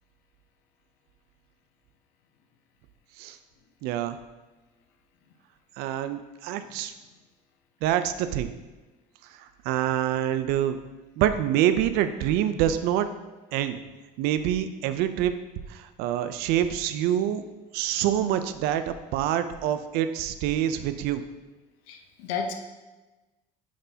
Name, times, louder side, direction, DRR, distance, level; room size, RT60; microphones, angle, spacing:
voice 1, 3.8-4.2 5.8-6.9 7.8-8.5 9.6-10.8 11.2-13.1 13.5-13.8 14.2-15.4 15.7-17.5 17.7-21.3, right 11 dB, 80° right, 11 dB, 0.4 m, -26 dB
voice 2, 21.9-22.5, left 5 dB, 85° left, 5 dB, 0.7 m, -32 dB
9.3 x 4.0 x 2.8 m, 1.2 s
supercardioid pair, 105°, 16 cm